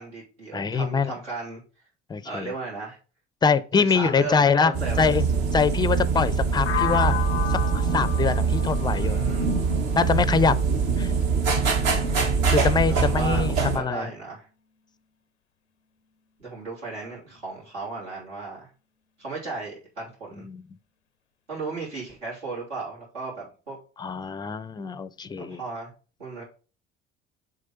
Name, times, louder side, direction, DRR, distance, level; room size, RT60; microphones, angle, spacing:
voice 1, 0.0-1.6 2.2-3.0 3.9-5.0 9.0-9.5 12.9-14.5 16.4-18.7 19.2-20.5 21.5-23.8 25.4-25.9 26.2-26.4, right 3 dB, 75° right, 3.2 m, -35 dB
voice 2, 0.5-1.1 2.1-2.5 3.4-5.3 5.5-7.2 7.5-9.2 10.0-11.1 12.5-14.1 20.4-20.6 24.0-25.6, left 5 dB, 15° left, 0.4 m, -24 dB
sound 1, 4.7-13.8, right 5 dB, 55° right, 1.4 m, -23 dB
sound 2, 6.7-10.5, left 11 dB, 90° left, 0.5 m, -32 dB
6.6 x 3.6 x 5.4 m
figure-of-eight pair, 60°, 34 cm